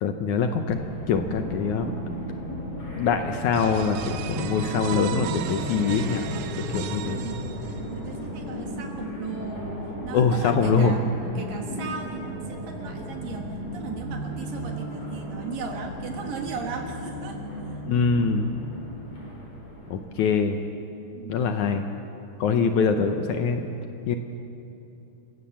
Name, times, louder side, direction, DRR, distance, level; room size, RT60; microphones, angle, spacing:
voice 1, 0.0-1.9 3.0-7.2 10.1-11.0 17.9-18.5 19.9-20.6 21.3-21.9 22.4-23.6 24.1-24.2, left 5 dB, 75° left, 6 dB, 1.8 m, -24 dB
sound 1, 0.7-19.9, equal, 50° left, 7.1 m, -35 dB
sound 2, 3.5-8.1, right 10 dB, 80° right, 2.7 m, -36 dB
voice 2, 7.0-7.6 7.9-9.7 10.0-11.0 11.4-17.8 21.1-21.4, right 5 dB, 65° right, 2 dB, 3.0 m, -37 dB
28.5 x 16.5 x 7.2 m, 2.8 s
omnidirectional pair, 4.6 m